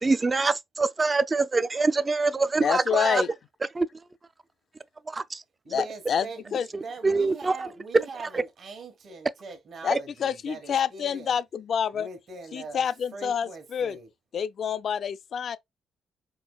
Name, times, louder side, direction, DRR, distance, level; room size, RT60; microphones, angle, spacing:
voice 1, 0.0-3.2 3.7-3.9 5.1-5.2 7.0-7.6 8.3-8.4 9.9-10.0, right 3 dB, 25° right, 0.3 m, -24 dB
voice 2, 2.6-3.3 5.7-6.3 6.5-6.7 9.8-12.1 12.5-14.0 14.3-15.6, left 7 dB, 55° left, 0.4 m, -27 dB
voice 3, 5.6-11.4 11.9-12.8 13.1-14.1, right 4 dB, 55° right, 1.3 m, -42 dB
5.2 x 2.4 x 2.2 m
cardioid pair, 90°, 0 cm